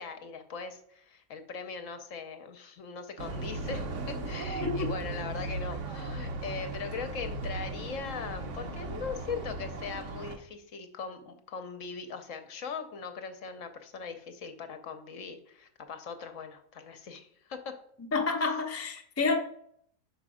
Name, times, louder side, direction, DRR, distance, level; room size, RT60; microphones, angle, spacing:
voice 1, 0.0-17.7, left 5 dB, 65° left, 7 dB, 1.0 m, -40 dB
sound 1, 3.2-10.4, right 3 dB, 60° right, 1.0 m, -37 dB
voice 2, 18.1-19.4, left 4 dB, 20° left, 2 dB, 0.4 m, -29 dB
5.5 x 5.0 x 4.8 m, 0.67 s
omnidirectional pair, 1.6 m